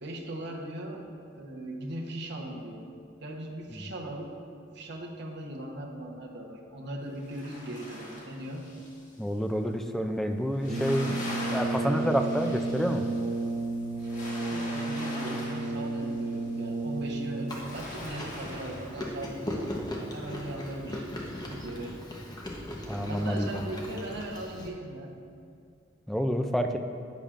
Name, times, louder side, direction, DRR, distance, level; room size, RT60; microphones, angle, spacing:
voice 1, 0.0-1.0 1.3-2.9 3.2-4.3 4.7-8.6 14.0-14.1 14.4-19.7 20.1-21.1 21.4-22.0 22.9-25.1, right 1 dB, 60° right, 0 dB, 1.1 m, -39 dB
sound 1, 7.0-9.2 10.5-21.9, left 1 dB, 40° left, 1.6 m, -43 dB
voice 2, 9.2-13.0 22.9-23.7 26.1-26.8, equal, ahead, 5 dB, 0.4 m, -29 dB
Brass instrument, 10.6-17.8, right 2 dB, 35° right, 0.9 m, -32 dB
Chewing mastication, 17.5-24.7, left 1 dB, 20° left, 1.0 m, -38 dB
10.5 x 8.4 x 2.5 m, 2.3 s
head